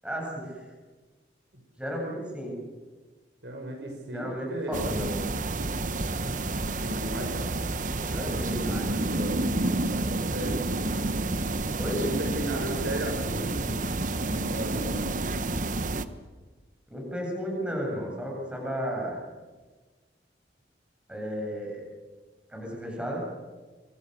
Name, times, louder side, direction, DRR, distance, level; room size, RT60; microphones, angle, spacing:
voice 1, 0.0-0.5 1.8-2.5 4.1-5.1 8.1-8.9 11.8-12.0 16.9-19.2 21.1-21.8 22.5-23.2, equal, 5° right, -2 dB, 7.8 m, -33 dB
voice 2, 3.4-4.8 6.0-7.5 9.9-10.6 11.9-15.4, right 1 dB, 70° right, 2 dB, 6.9 m, -36 dB
sound 1, 4.7-16.1, right 2 dB, 45° right, 1.1 m, -29 dB
27.5 x 25.5 x 6.8 m, 1.3 s
head